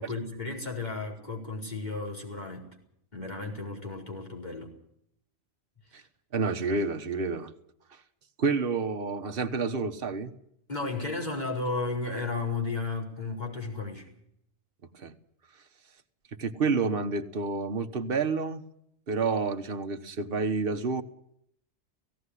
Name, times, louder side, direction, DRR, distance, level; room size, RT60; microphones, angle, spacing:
voice 1, 0.0-2.7 3.1-4.7 10.7-14.1, left 3 dB, 40° left, -1 dB, 4.9 m, -34 dB
voice 2, 6.3-7.5 8.4-10.3 14.9-15.1 16.4-18.6 19.1-21.0, right 4 dB, 55° right, 6 dB, 1.5 m, -29 dB
17.0 x 17.0 x 9.9 m, 0.74 s
omnidirectional pair, 1.2 m